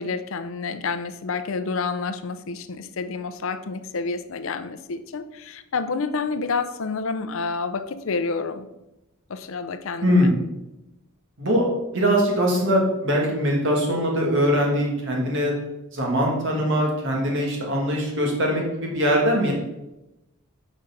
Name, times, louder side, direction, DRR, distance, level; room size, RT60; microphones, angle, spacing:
voice 1, 0.0-8.7 9.3-10.3, left 4 dB, 65° left, 11 dB, 0.5 m, -29 dB
voice 2, 11.9-15.5 15.9-19.5, equal, 55° right, -1 dB, 2.1 m, -22 dB
6.5 x 4.9 x 5.8 m, 0.94 s
head